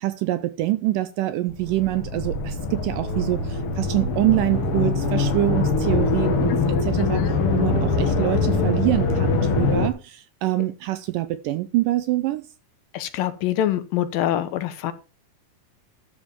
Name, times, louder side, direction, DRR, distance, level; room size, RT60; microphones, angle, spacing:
voice 1, 0.0-12.5, right 16 dB, 80° right, 2.0 m, -25 dB
sound 1, 1.5-9.9, left 3 dB, 50° left, 2.0 m, -23 dB
voice 2, 7.0-7.3 12.9-14.9, left 12 dB, 75° left, 2.5 m, -25 dB
12.5 x 4.8 x 6.7 m
omnidirectional pair, 4.3 m